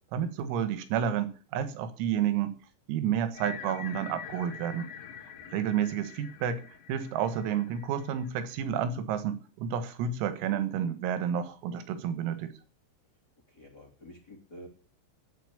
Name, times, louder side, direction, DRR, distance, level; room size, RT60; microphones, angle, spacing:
voice 1, 0.1-2.5 2.9-4.9 5.5-6.6 6.9-12.5, right 8 dB, 85° right, 11 dB, 4.3 m, -30 dB
sound 1, 3.3-8.5, left 8 dB, 60° left, 2.3 m, -46 dB
voice 2, 13.5-14.7, equal, 25° left, 1 dB, 2.4 m, -49 dB
10.5 x 9.8 x 8.6 m, 0.38 s
omnidirectional pair, 6.0 m